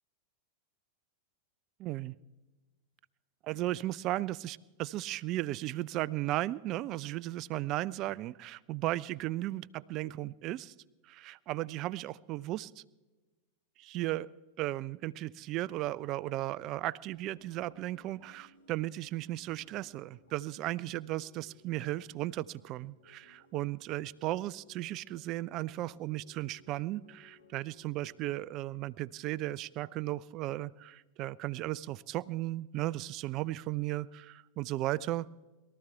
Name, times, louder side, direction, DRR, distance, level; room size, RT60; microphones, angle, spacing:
voice 1, 1.8-2.1 3.4-10.7 11.0-12.8 13.8-14.3 14.6-35.3, right 16 dB, 40° right, 21 dB, 0.4 m, -35 dB
sound 1, 17.1-28.2, left 2 dB, 75° left, 2.2 m, -62 dB
22.5 x 13.5 x 3.4 m, 1.2 s
figure-of-eight pair, 90°, 0 cm